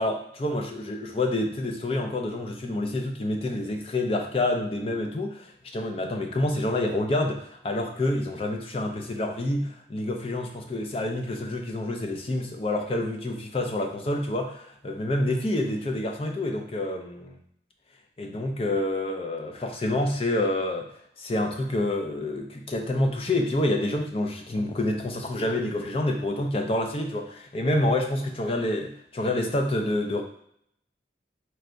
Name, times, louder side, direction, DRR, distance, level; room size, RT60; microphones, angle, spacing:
voice 1, 0.0-17.4 18.2-20.9 21.2-28.9 29.1-30.2, left 1 dB, 30° left, 3 dB, 0.4 m, -28 dB
4.3 x 3.3 x 2.5 m, 0.70 s
head